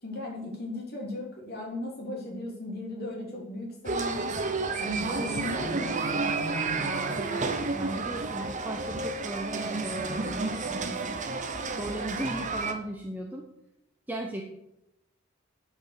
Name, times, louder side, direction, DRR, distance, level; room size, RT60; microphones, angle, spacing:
voice 1, 0.0-4.4 4.8-6.3, left 1 dB, 50° left, -2 dB, 3.3 m, -36 dB
sound 1, 3.8-12.7, right 3 dB, 40° right, 0.9 m, -31 dB
voice 2, 6.8-7.4 7.7-11.2 11.7-13.4 14.1-14.4, right 1 dB, 10° right, -1 dB, 1.0 m, -37 dB
9.6 x 5.5 x 6.6 m, 0.82 s
head